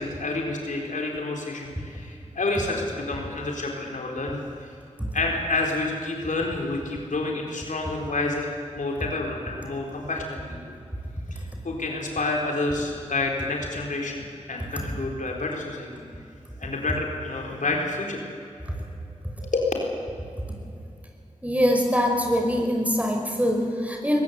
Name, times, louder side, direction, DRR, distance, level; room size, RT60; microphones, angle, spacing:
voice 1, 0.0-4.4 5.1-10.6 11.3-16.0 16.6-18.3 19.4-19.7, left 2 dB, 85° left, 0 dB, 4.1 m, -29 dB
voice 2, 21.4-24.2, equal, 10° right, 2 dB, 5.6 m, -23 dB
22.0 x 19.5 x 8.3 m, 2.6 s
cardioid pair, 45°, 13 cm